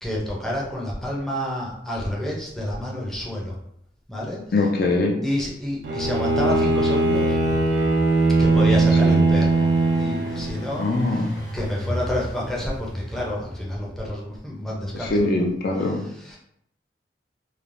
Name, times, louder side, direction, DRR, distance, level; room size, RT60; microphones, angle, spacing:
voice 1, 0.0-3.6 4.1-4.4 5.2-7.4 8.4-15.5 15.9-16.4, left 1 dB, ahead, -4 dB, 0.5 m, -29 dB
voice 2, 4.5-5.2 9.0-9.2 10.8-11.3 14.9-16.0, left 2 dB, 55° left, 1 dB, 0.4 m, -22 dB
Engine, 5.8-13.9, equal, 85° left, 1.0 m, -34 dB
Bowed string instrument, 5.8-10.7, right 2 dB, 80° right, 0.5 m, -20 dB
3.1 x 2.0 x 2.5 m, 0.73 s
head